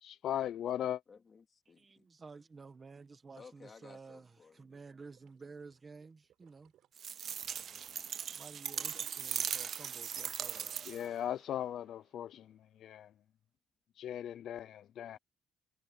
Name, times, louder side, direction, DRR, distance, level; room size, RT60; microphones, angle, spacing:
voice 1, 0.0-1.0 10.9-13.1 14.0-15.2, left 11 dB, 55° left, 0.4 m, -38 dB
voice 2, 1.1-2.1 3.3-4.8 8.9-9.7 15.1-15.2, left 5 dB, 25° left, 3.1 m, -58 dB
voice 3, 1.8-4.3 4.5-6.7 8.2-10.9, right 4 dB, 20° right, 1.4 m, -52 dB
sound 1, 4.9-9.0 9.3-11.8 12.3-12.4, right 12 dB, 60° right, 6.5 m, -73 dB
sound 2, 7.0-11.2, right 8 dB, 40° right, 0.3 m, -39 dB
cardioid pair, 150°, 0 cm